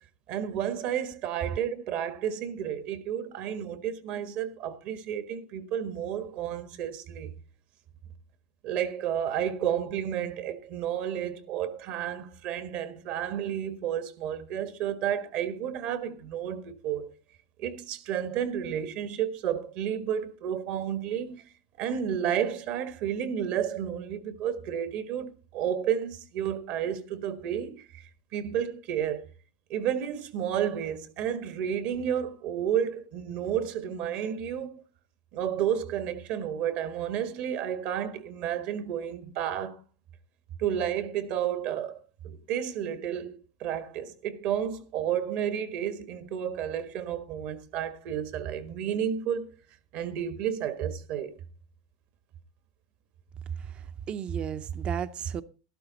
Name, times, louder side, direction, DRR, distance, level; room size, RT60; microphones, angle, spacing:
voice 1, 0.3-7.3 8.6-17.1 17.6-21.5 21.8-28.0 28.3-29.3 29.7-34.8 35.3-39.8 40.6-42.0 42.2-49.5 49.9-51.3, right 9 dB, 55° right, 1.6 m, -31 dB
voice 2, 53.6-55.4, right 8 dB, 35° right, 0.7 m, -33 dB
12.5 x 12.0 x 4.0 m
supercardioid pair, 125°, 3 cm